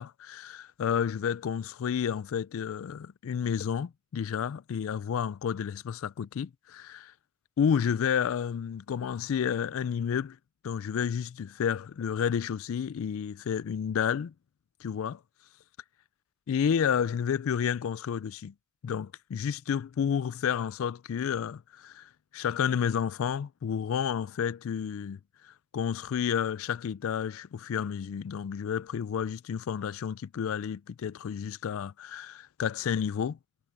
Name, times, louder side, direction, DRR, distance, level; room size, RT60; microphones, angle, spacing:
voice 1, 0.0-7.1 7.6-10.4 10.6-14.3 14.8-15.2 16.5-18.5 18.8-33.4, left 7 dB, 65° left, 0.3 m, -31 dB
head